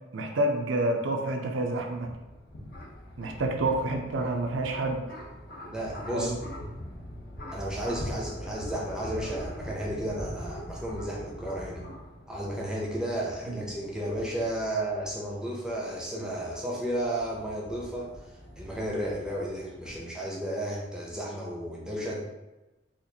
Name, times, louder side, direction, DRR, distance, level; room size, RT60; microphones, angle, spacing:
voice 1, 0.1-2.1 3.2-5.1 6.1-6.4 13.5-13.7, right 2 dB, 75° right, 3 dB, 0.5 m, -28 dB
sound 1, 1.9-20.0, equal, 50° left, 0.6 m, -43 dB
voice 2, 5.6-6.3 7.5-11.8 12.3-22.2, right 1 dB, 5° right, -4 dB, 0.6 m, -33 dB
4.3 x 2.4 x 2.7 m, 1.1 s
head